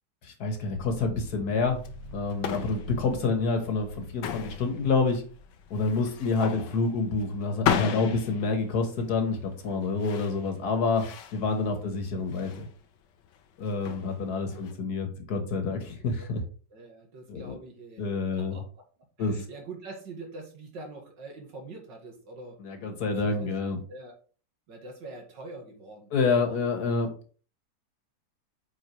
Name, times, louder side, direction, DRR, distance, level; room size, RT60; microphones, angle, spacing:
voice 1, 0.2-1.8 2.1-5.2 5.7-11.0 11.3-12.7 13.6-16.4 17.3-17.6 18.0-18.6 19.2-19.4 22.6-23.8 26.1-27.1, left 4 dB, 60° left, 5 dB, 1.8 m, -28 dB
sound 1, 0.7-8.0, left 2 dB, 45° right, 2.0 m, -47 dB
sound 2, 1.7-14.7, left 8 dB, 75° left, 1.4 m, -35 dB
voice 2, 5.7-6.2 14.4-14.8 16.2-16.3 16.7-18.6 19.2-22.6 23.2-23.5 23.9-24.1 24.7-26.1 26.5-26.6, right 3 dB, 75° right, 2 dB, 2.5 m, -44 dB
8.4 x 4.8 x 3.2 m, 0.40 s
omnidirectional pair, 2.0 m